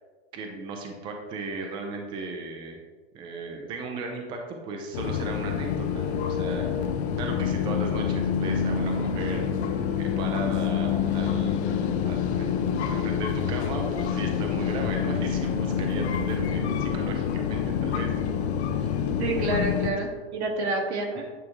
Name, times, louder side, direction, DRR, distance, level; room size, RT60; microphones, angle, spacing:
voice 1, 0.3-2.8 3.1-6.9 7.2-18.4 18.8-19.0 19.8-20.1 21.2-21.3, right 3 dB, 15° right, 2 dB, 0.4 m, -36 dB
sound 1, 4.9-19.9, left 7 dB, 80° left, 0.7 m, -27 dB
voice 2, 19.1-21.2, right 2 dB, 85° right, 0 dB, 1.6 m, -28 dB
8.6 x 3.6 x 3.0 m, 1.4 s
supercardioid pair, 150°, 32 cm